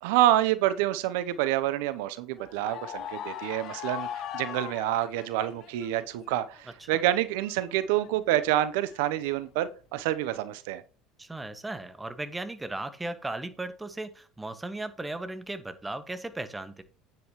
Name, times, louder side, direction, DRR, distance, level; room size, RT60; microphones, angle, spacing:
voice 1, 0.0-10.8, right 13 dB, 70° right, 14 dB, 0.8 m, -27 dB
sound 1, 2.4-6.0 6.3-8.1 8.5-9.3 10.1-10.4, left 10 dB, 55° left, 0.9 m, -40 dB
voice 2, 11.2-16.8, right 2 dB, 15° right, 10 dB, 1.6 m, -36 dB
9.6 x 9.0 x 3.1 m, 0.35 s
hypercardioid pair, 75°, 0 cm